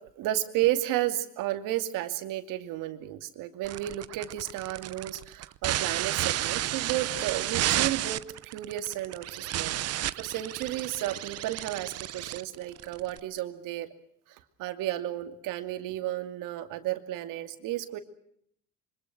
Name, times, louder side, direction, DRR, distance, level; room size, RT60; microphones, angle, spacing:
voice 1, 0.2-8.2 8.5-13.9 14.6-18.0, right 14 dB, 75° right, 8 dB, 2.6 m, -32 dB
sound 1, 3.6-13.2, right 13 dB, 50° right, 0.9 m, -32 dB
26.5 x 25.0 x 6.1 m, 0.69 s
cardioid pair, 125°, 32 cm